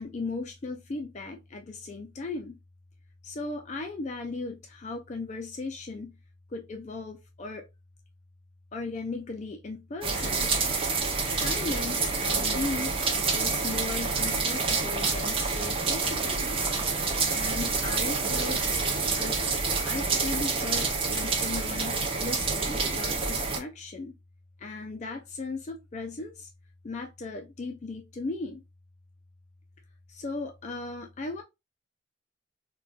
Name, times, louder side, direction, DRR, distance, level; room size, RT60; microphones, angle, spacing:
voice 1, 0.0-2.6 3.2-6.2 6.5-7.7 8.7-10.5 11.3-12.9 13.3-16.6 17.3-18.6 19.1-19.4 19.8-24.1 24.6-26.5 26.8-28.6 30.1-31.4, left 3 dB, 35° left, 0.3 m, -37 dB
sound 1, 10.0-23.6, right 4 dB, 30° right, 0.5 m, -28 dB
3.8 x 2.2 x 2.2 m
head